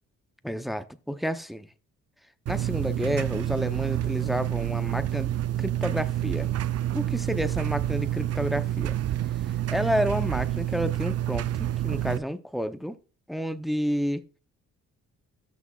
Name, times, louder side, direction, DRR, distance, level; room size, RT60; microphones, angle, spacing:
voice 1, 0.4-1.7 2.5-5.3 5.6-6.5 6.9-8.9 9.7-11.4 11.8-13.0 13.3-14.2, equal, ahead, 0.7 m, -30 dB
sound 1, 2.5-12.2, right 12 dB, 55° right, 0.6 m, -28 dB
13.5 x 6.2 x 2.4 m
cardioid pair, 90°, 30 cm